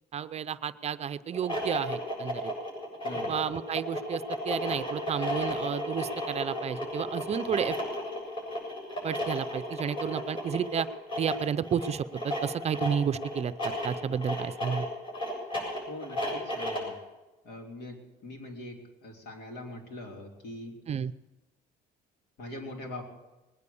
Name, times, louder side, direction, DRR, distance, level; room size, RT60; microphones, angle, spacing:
voice 1, 0.1-2.5 3.3-7.8 9.0-10.9 11.2-14.9 20.9-21.1, right 8 dB, 40° right, 13 dB, 0.5 m, -31 dB
sound 1, 1.3-17.0, left 1 dB, 30° left, 7.5 m, -34 dB
voice 2, 3.0-3.4 15.9-17.0 17.4-20.8 22.4-23.0, left 1 dB, 75° left, 2 dB, 3.3 m, -42 dB
20.5 x 9.7 x 7.0 m, 1.0 s
cardioid pair, 110°, 17 cm